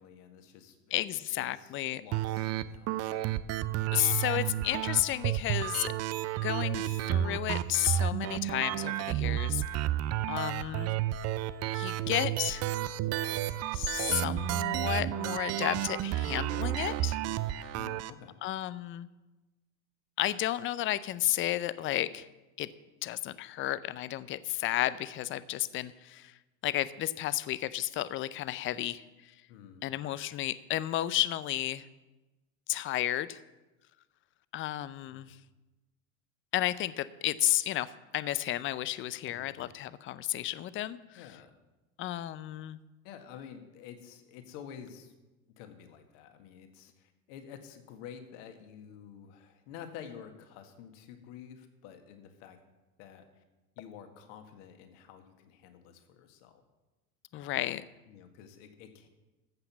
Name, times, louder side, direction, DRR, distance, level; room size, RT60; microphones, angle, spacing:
voice 1, 0.0-3.3 17.7-18.4 29.5-29.9 35.1-35.4 39.3-39.6 41.1-41.5 43.0-45.1 45.6-52.6 53.0-53.4 53.8-56.6 57.3-57.6 58.1-59.1, left 8 dB, 60° left, 7 dB, 1.9 m, -50 dB
voice 2, 0.9-2.0 3.9-5.9 6.4-9.8 10.3-10.9 11.7-12.6 13.7-17.2 17.6-17.7 18.4-19.1 20.2-22.3 22.6-22.7 23.0-26.3 26.6-29.0 29.8-31.8 32.7-33.4 34.5-35.4 36.5-41.2 42.0-42.8 57.3-57.8, left 14 dB, 30° left, 17 dB, 0.5 m, -32 dB
sound 1, 2.1-18.1, right 12 dB, 35° right, 0.6 m, -31 dB
14.5 x 5.8 x 7.1 m, 1.1 s
hypercardioid pair, 90°, 42 cm